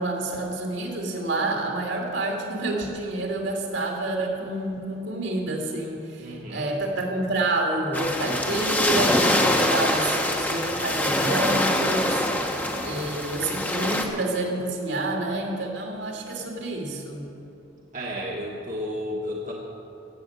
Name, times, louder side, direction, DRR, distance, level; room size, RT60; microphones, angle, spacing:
voice 1, 0.0-12.6 12.8-17.3, right 2 dB, 75° right, 0 dB, 2.5 m, -28 dB
voice 2, 6.2-6.8 12.6-13.1 17.9-19.5, equal, 40° right, -2 dB, 1.3 m, -33 dB
sound 1, 7.9-14.0, left 1 dB, 10° left, 1.0 m, -24 dB
16.0 x 7.7 x 8.0 m, 2.9 s
head